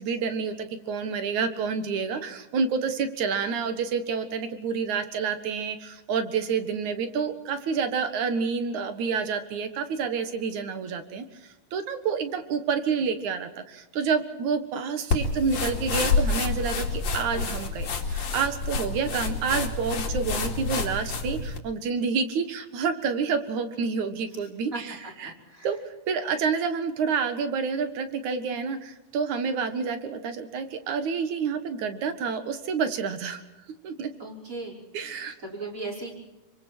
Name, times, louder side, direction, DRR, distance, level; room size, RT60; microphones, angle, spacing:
voice 1, 0.0-25.3 25.6-33.4 33.8-34.1 34.9-35.4, right 5 dB, 60° right, 8 dB, 2.7 m, -29 dB
sound 1, 15.1-21.6, left 4 dB, 50° left, 3.4 m, -28 dB
voice 2, 24.7-25.7 34.2-34.8 35.4-36.1, right 2 dB, 20° right, -2 dB, 5.6 m, -37 dB
27.0 x 24.5 x 4.5 m, 1.1 s
omnidirectional pair, 4.2 m